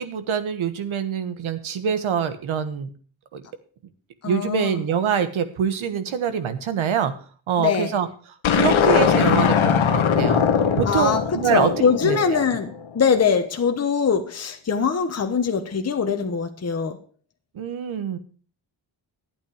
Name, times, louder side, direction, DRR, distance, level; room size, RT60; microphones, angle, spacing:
voice 1, 0.0-2.9 3.3-3.4 4.3-7.1 7.5-8.1 8.5-10.4 10.8-11.7 12.0-12.4 17.5-18.2, right 7 dB, 85° right, 1.4 m, -24 dB
voice 2, 4.2-4.8 7.6-7.9 10.9-17.0, left 6 dB, 30° left, 1.1 m, -22 dB
sound 1, 8.4-12.8, left 7 dB, 80° left, 1.2 m, -20 dB
11.5 x 9.0 x 4.9 m
wide cardioid pair, 125°, 47 cm